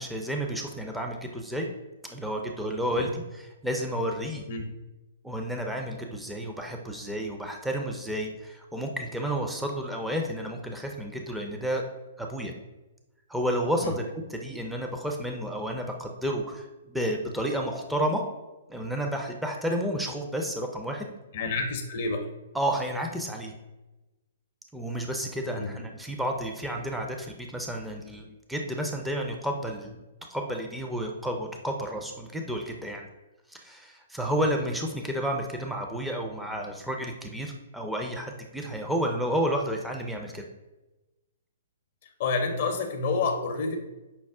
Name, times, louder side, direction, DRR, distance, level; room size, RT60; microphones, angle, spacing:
voice 1, 0.0-1.7 2.1-4.5 5.2-11.8 12.2-12.5 13.3-18.2 18.7-21.1 22.5-23.5 24.7-30.0 30.3-33.0 33.5-40.4, equal, 5° right, 1 dB, 0.4 m, -31 dB
voice 2, 21.3-22.2 25.6-25.7 42.2-43.8, left 4 dB, 55° left, 4 dB, 0.5 m, -28 dB
5.7 x 2.0 x 3.5 m, 1.1 s
figure-of-eight pair, 120°, 0 cm